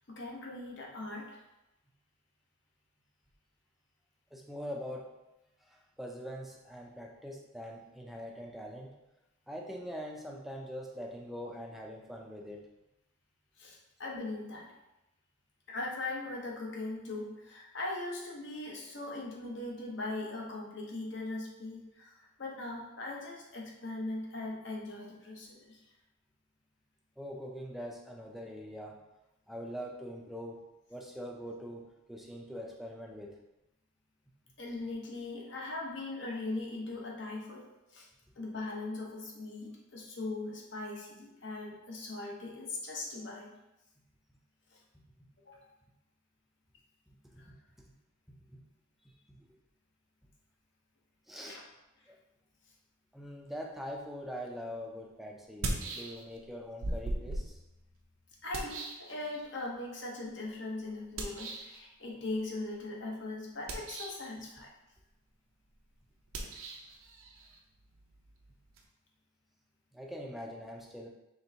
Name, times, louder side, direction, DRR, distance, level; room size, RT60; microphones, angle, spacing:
voice 1, 0.1-1.4 13.6-14.7 15.7-25.8 34.6-38.1 38.4-43.5 44.7-44.8 45.5-45.7 47.4-47.5 51.4-51.6 58.4-64.7, left 2 dB, 60° left, -2 dB, 0.8 m, -40 dB
voice 2, 4.3-5.1 5.6-8.9 9.5-12.6 27.2-29.0 29.5-30.6 30.9-33.4 47.1-47.6 48.5-48.7 49.0-49.4 51.3-51.6 52.1-52.2 53.1-57.6 69.9-71.1, equal, ahead, -1 dB, 0.4 m, -43 dB
sound 1, 54.5-54.6 55.4-56.5 56.8-59.7 61.2-61.8 63.5-64.3 66.3-68.9, right 2 dB, 80° right, 0.6 m, -39 dB
4.3 x 3.3 x 2.7 m, 0.94 s
head